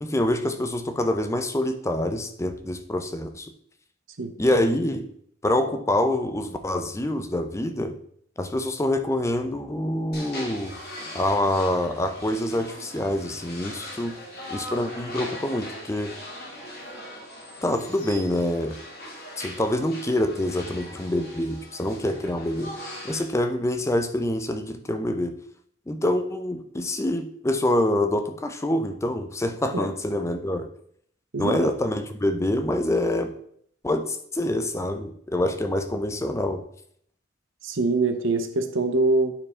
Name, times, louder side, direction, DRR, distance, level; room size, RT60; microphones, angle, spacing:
voice 1, 0.0-3.5 4.4-5.1 5.4-8.0 8.4-10.8 11.1-14.2 14.5-16.1 17.6-18.8 19.4-22.8 23.0-25.4 25.9-30.7 31.4-33.3 33.8-36.6, left 1 dB, 15° left, 7 dB, 0.5 m, -26 dB
sound 1, 10.1-23.2, left 1 dB, 50° left, 2.4 m, -40 dB
voice 2, 31.3-31.7 37.6-39.3, right 3 dB, 70° right, 8 dB, 0.9 m, -24 dB
8.9 x 4.7 x 4.3 m, 0.65 s
head